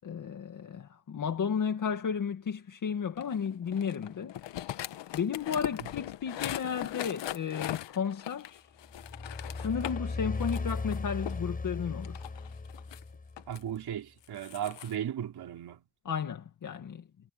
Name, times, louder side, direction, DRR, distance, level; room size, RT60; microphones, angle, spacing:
voice 1, 0.0-4.4 5.1-8.7 9.6-12.2 16.1-17.1, left 7 dB, 45° left, 2.1 m, -33 dB
sound 1, 3.2-10.0 10.4-11.4 12.0-13.6 14.2-14.9, left 12 dB, 70° left, 1.3 m, -39 dB
sound 2, 8.9-13.6, left 3 dB, 20° left, 7.3 m, -37 dB
voice 2, 13.5-15.9, right 10 dB, 55° right, 3.6 m, -36 dB
cardioid pair, 170°, 45 cm